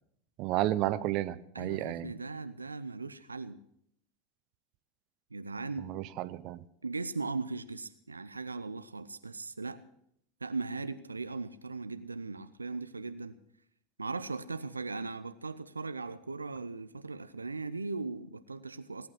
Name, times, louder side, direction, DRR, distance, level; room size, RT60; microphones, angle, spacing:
voice 1, 0.4-2.1 5.8-6.6, right 14 dB, 45° right, 15 dB, 0.8 m, -32 dB
voice 2, 1.5-3.6 5.3-5.9 6.8-9.8 10.4-13.4 14.0-19.1, right 3 dB, 85° right, 12 dB, 0.6 m, -38 dB
18.5 x 8.8 x 7.5 m, 0.71 s
figure-of-eight pair, 85°, 0 cm